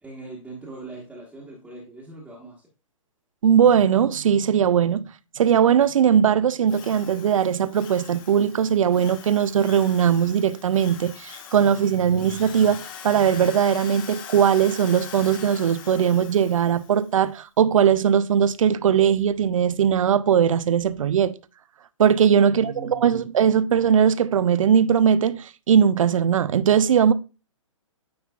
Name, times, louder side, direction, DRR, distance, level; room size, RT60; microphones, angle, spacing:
voice 1, 0.0-2.6 22.5-23.2, right 2 dB, 5° right, 1.2 m, -40 dB
voice 2, 3.4-5.1 5.4-21.3 22.0-27.1, right 8 dB, 70° right, 0.5 m, -19 dB
Drill, 6.7-17.1, left 8 dB, 40° left, 1.1 m, -42 dB
9.3 x 4.4 x 2.4 m
hypercardioid pair, 135°, 17 cm